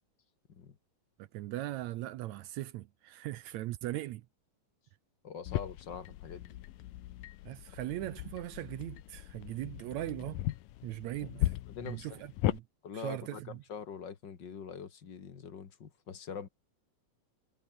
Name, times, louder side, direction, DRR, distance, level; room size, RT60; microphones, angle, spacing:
voice 1, 1.2-4.2 7.5-10.4 10.8-11.5 11.8-12.6 12.9-13.6, right 15 dB, 75° right, 1.7 m, -39 dB
voice 2, 5.2-6.6 11.2-11.3 11.7-12.2 12.8-16.5, left 7 dB, 40° left, 2.0 m, -44 dB
sound 1, 5.5-12.6, left 15 dB, 85° left, 2.6 m, -37 dB
omnidirectional pair, 3.8 m